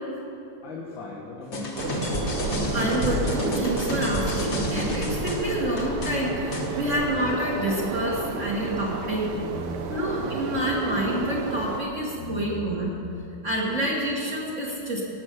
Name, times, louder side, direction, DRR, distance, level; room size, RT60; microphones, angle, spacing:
voice 1, 0.2-2.3 6.6-7.0 8.4-8.8 9.1-10.1 10.5-10.6 11.9-12.6 13.3-13.9, left 2 dB, 90° left, -4 dB, 2.2 m, -40 dB
sound 1, 1.5-6.7, left 1 dB, 50° left, 1.7 m, -30 dB
sound 2, 1.8-11.8, right 4 dB, 70° right, 1.4 m, -31 dB
voice 2, 2.7-9.3 9.9-12.9 13.4-15.0, right 1 dB, 45° right, -5 dB, 1.8 m, -28 dB
18.0 x 6.2 x 6.6 m, 2.9 s
omnidirectional pair, 2.0 m